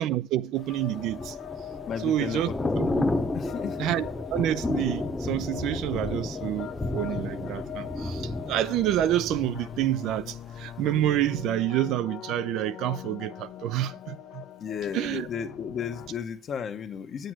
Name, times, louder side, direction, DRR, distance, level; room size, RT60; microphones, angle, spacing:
voice 1, 0.0-1.3 2.0-3.1 3.8-14.4 14.9-15.3, right 12 dB, 75° right, 0.5 m, -28 dB
sound 1, 0.6-16.1, left 10 dB, 65° left, 1.0 m, -42 dB
Thunder / Rain, 0.7-10.7 11.0-11.3, left 2 dB, 10° left, 0.9 m, -32 dB
voice 2, 1.9-3.0 3.3-3.8 14.6-17.3, left 7 dB, 45° left, 1.1 m, -34 dB
9.9 x 7.9 x 6.1 m
cardioid pair, 155°, 0 cm